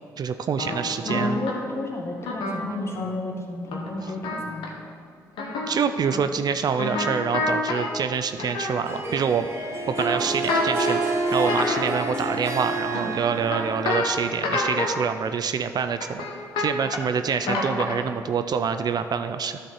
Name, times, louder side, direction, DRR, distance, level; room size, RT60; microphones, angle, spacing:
voice 1, 0.2-1.4 5.7-9.5 9.9-19.6, right 6 dB, 50° right, 9 dB, 0.4 m, -26 dB
sound 1, 0.6-1.5 2.2-3.1 3.6-4.7 5.4-5.8 6.0-6.2 6.8-7.9 8.4-9.2 9.9-11.0 11.4-12.1 12.9-14.1 14.4-14.9 15.9-17.1 17.4-18.1, left 2 dB, 75° left, 1.2 m, -28 dB
voice 2, 1.0-4.7, left 2 dB, 30° left, 0 dB, 1.8 m, -33 dB
Harp, 8.9-14.6, right 2 dB, 30° right, 2.0 m, -28 dB
11.0 x 4.2 x 5.8 m, 2.3 s
hypercardioid pair, 50°, 9 cm